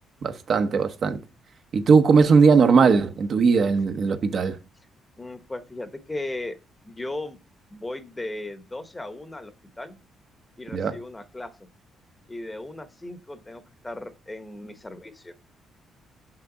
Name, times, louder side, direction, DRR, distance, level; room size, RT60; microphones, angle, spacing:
voice 1, 0.2-1.2 1.7-4.6 10.7-11.0, right 5 dB, 55° right, 0.9 m, -19 dB
voice 2, 5.2-6.6 6.8-7.4 7.7-10.0 10.6-11.7 12.3-15.4, left 2 dB, 15° left, 1.0 m, -36 dB
6.0 x 5.8 x 3.8 m
cardioid pair, 90°, 0 cm